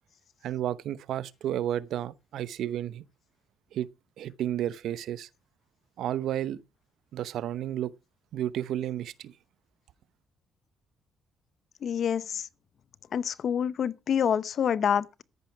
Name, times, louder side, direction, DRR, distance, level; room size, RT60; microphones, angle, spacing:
voice 1, 0.4-3.0 3.7-3.9 4.2-5.3 6.0-6.6 7.1-7.9 8.3-9.3, right 11 dB, 80° right, 0.8 m, -32 dB
voice 2, 11.8-12.5 13.1-15.2, left 8 dB, 60° left, 0.8 m, -27 dB
14.0 x 10.5 x 4.7 m
cardioid pair, 90°, 0 cm